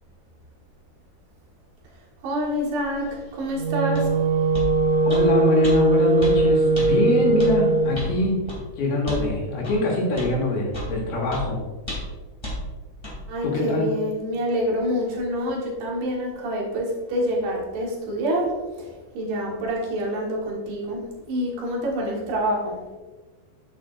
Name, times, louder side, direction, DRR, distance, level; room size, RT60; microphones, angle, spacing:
voice 1, 2.2-4.1 13.3-18.5 18.8-22.8, equal, 70° right, -2 dB, 3.5 m, -27 dB
Wind instrument woodwind instrument, 3.4-8.0, right 3 dB, 45° right, 2.3 m, -20 dB
sound 1, 3.9-4.1 4.5-4.7 5.1-5.3 5.6-5.8 6.2-6.4 6.7-6.9 7.4-7.5 7.9-8.1 8.5-8.6 9.1-9.3 9.6-9.8 10.2-10.3 10.7-10.9 11.3-11.4 11.9-12.1 12.4-12.6 13.0-13.2, left 1 dB, 15° left, 0.9 m, -32 dB
voice 2, 5.0-8.4 8.8-11.6 13.4-13.9, left 2 dB, 70° left, -2 dB, 3.5 m, -23 dB
9.0 x 8.4 x 2.5 m, 1.3 s
omnidirectional pair, 4.9 m